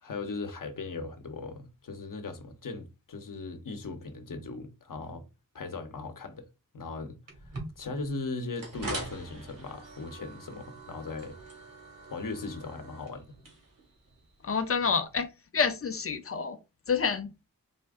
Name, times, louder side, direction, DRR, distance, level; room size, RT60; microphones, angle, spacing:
voice 1, 0.0-5.3 5.5-6.5 6.7-7.2 7.4-11.4 12.1-13.4, left 3 dB, 70° left, 0.9 m, -38 dB
sound 1, 7.3-15.2, right 2 dB, 70° right, 1.7 m, -44 dB
voice 2, 14.4-15.3 15.5-16.6 16.9-17.3, left 5 dB, 40° left, 0.6 m, -28 dB
4.2 x 2.6 x 3.5 m
wide cardioid pair, 100°, 34 cm